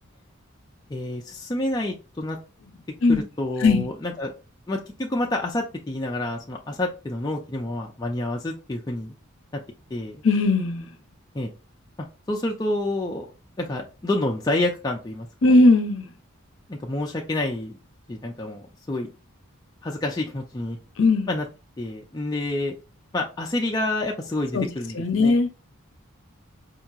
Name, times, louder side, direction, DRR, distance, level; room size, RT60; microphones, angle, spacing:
voice 1, 0.9-2.4 3.1-4.3 4.7-9.1 9.5-9.6 9.9-10.2 11.3-11.5 12.0-13.3 13.6-15.3 16.7-17.8 18.1-19.1 19.8-20.8 21.3-21.5 21.8-22.7 23.1-25.4, left 1 dB, 15° left, 0.4 m, -28 dB
voice 2, 10.2-10.9 15.4-16.1 21.0-21.3 24.5-24.7 24.9-25.5, left 2 dB, 60° left, 0.7 m, -18 dB
4.4 x 2.8 x 2.4 m
head